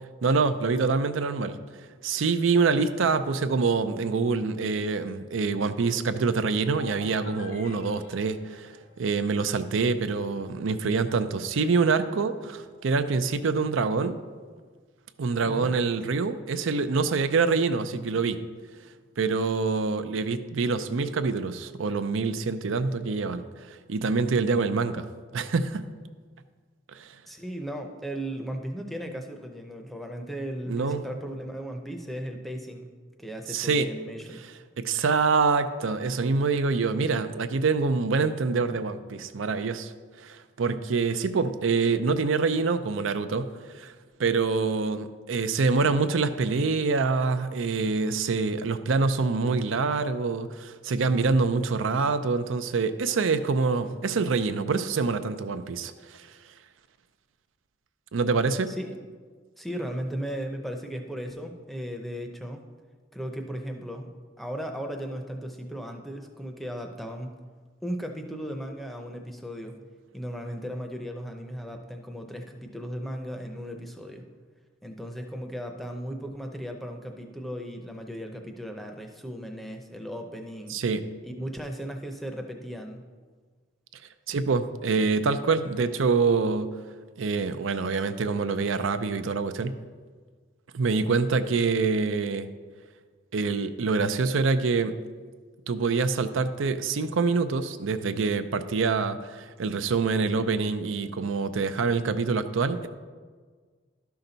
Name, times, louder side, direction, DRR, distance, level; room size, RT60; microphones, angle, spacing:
voice 1, 0.2-1.6 2.0-14.2 15.2-18.4 19.2-25.1 25.3-25.8 26.9-27.2 30.7-31.1 33.5-33.9 34.8-39.9 40.2-43.9 44.2-56.3 58.1-58.8 80.7-81.1 84.3-86.7 87.2-89.7 90.7-92.5 93.3-95.0 95.7-102.9, right 4 dB, 85° right, 10 dB, 0.5 m, -26 dB
sound 1, 6.7-9.5, left 2 dB, 75° left, 1.0 m, -47 dB
voice 2, 15.4-15.7 27.3-34.4 58.7-58.9 59.6-62.6 63.1-67.4 67.8-69.9 70.1-74.3 74.8-80.8 81.2-83.1, equal, ahead, 4 dB, 0.6 m, -36 dB
12.0 x 5.8 x 3.9 m, 1.5 s
head